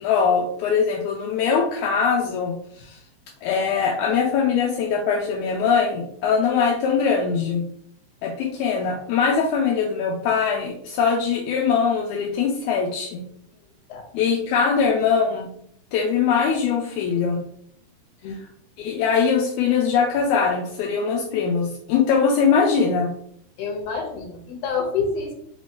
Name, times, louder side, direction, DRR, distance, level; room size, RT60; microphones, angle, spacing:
voice 1, 0.0-3.0 3.4-7.6 8.2-13.2 14.1-15.5 15.9-17.4 18.3-18.4 18.8-23.1, left 6 dB, 80° left, 0 dB, 1.9 m, -22 dB
voice 2, 23.6-25.3, left 5 dB, 65° left, 0 dB, 2.1 m, -27 dB
5.1 x 3.0 x 2.8 m, 0.69 s
omnidirectional pair, 3.4 m